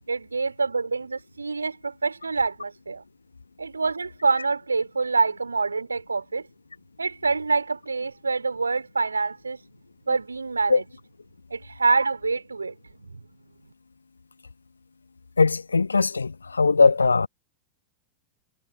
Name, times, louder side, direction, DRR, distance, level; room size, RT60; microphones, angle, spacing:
voice 1, 0.1-3.0 3.6-6.4 7.0-9.6 10.1-10.8 11.5-12.7, right 4 dB, 80° right, 3.2 m, -26 dB
voice 2, 15.4-17.3, left 4 dB, 75° left, 1.2 m, -20 dB
figure-of-eight pair, 90°, 0 cm